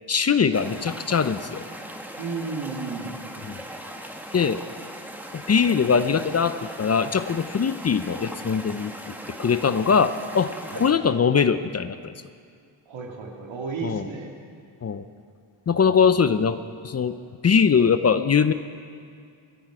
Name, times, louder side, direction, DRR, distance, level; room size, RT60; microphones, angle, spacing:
voice 1, 0.1-1.7 3.5-3.6 4.3-4.6 5.3-12.1 13.8-14.1 14.8-15.0 15.7-17.2 17.4-18.5, left 6 dB, 35° left, 12 dB, 0.5 m, -22 dB
sound 1, 0.5-10.9, right 1 dB, 5° right, 1.4 m, -39 dB
voice 2, 2.2-3.1 10.7-10.8 12.9-14.3, right 4 dB, 80° right, 1 dB, 2.1 m, -33 dB
23.0 x 10.0 x 4.9 m, 2.2 s
cardioid pair, 85°, 46 cm